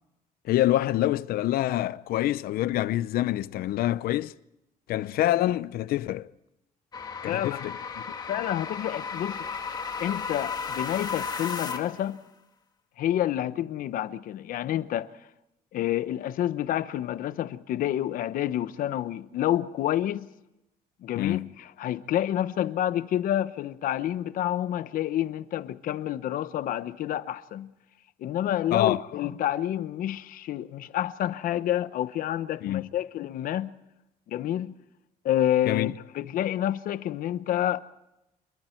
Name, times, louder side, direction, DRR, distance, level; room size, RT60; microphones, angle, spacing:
voice 1, 0.5-4.3 4.9-6.3 7.2-7.7 21.2-21.5 28.7-29.0 32.6-32.9 35.7-35.9, left 14 dB, 85° left, 0.7 m, -26 dB
sound 1, 6.9-12.1, left 5 dB, 25° left, 1.8 m, -34 dB
voice 2, 7.2-7.6 8.3-9.5 9.7-12.2 13.0-15.1 15.7-20.3 21.0-27.7 28.2-33.7 34.3-34.7 35.2-37.8, left 12 dB, 65° left, 1.0 m, -29 dB
28.5 x 22.5 x 4.6 m
cardioid pair, 175°, 15 cm